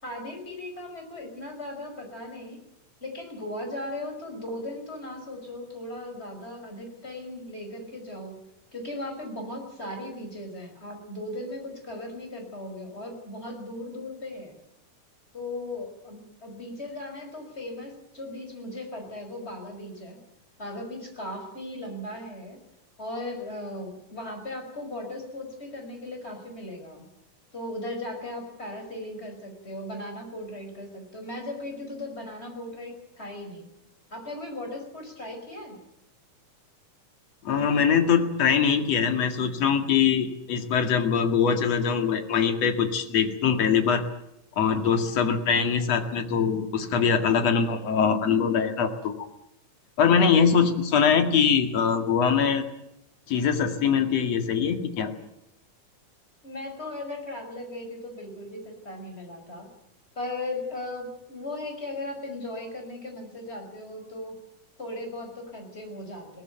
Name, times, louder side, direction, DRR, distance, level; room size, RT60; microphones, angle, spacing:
voice 1, 0.0-2.6 3.0-8.4 8.7-14.6 15.3-20.2 20.6-22.6 23.0-27.1 27.5-33.6 34.1-35.8 56.4-59.7 60.2-64.4 64.8-66.4, left 1 dB, 20° left, 3 dB, 5.7 m, -37 dB
voice 2, 37.4-44.0 44.6-49.3 50.0-52.6 53.3-55.1, left 6 dB, 55° left, 6 dB, 3.1 m, -23 dB
21.5 x 18.5 x 9.2 m, 0.83 s
omnidirectional pair, 3.7 m